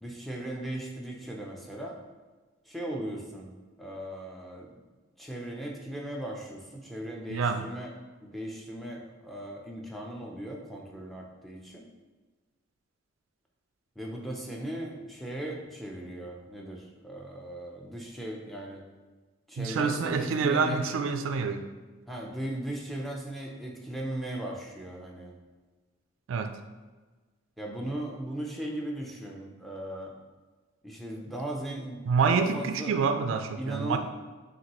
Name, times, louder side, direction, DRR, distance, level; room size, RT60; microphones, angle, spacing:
voice 1, 0.0-2.0 2.7-3.5 3.8-4.7 5.2-7.9 8.2-11.9 14.0-18.8 19.5-20.8 22.1-25.3 27.6-30.1 30.8-32.0 32.3-32.9 33.6-34.0, right 1 dB, ahead, -1 dB, 0.5 m, -37 dB
voice 2, 7.3-7.6 19.6-21.7 26.3-26.5 32.1-34.0, right 5 dB, 70° right, 7 dB, 0.3 m, -27 dB
5.8 x 2.6 x 2.9 m, 1.3 s
head